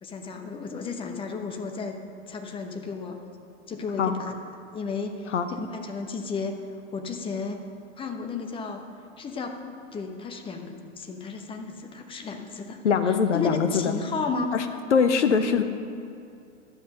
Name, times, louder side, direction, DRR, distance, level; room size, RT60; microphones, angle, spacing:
voice 1, 0.0-2.0 2.3-3.2 3.7-4.3 4.7-6.6 6.9-7.6 8.0-8.8 9.2-9.6 9.9-12.8 13.1-14.5, left 4 dB, 15° left, 4 dB, 0.9 m, -33 dB
voice 2, 12.8-13.9 14.5-14.6 14.9-15.6, left 6 dB, 60° left, 8 dB, 1.0 m, -22 dB
12.0 x 7.8 x 6.5 m, 2.4 s
figure-of-eight pair, 105°, 39 cm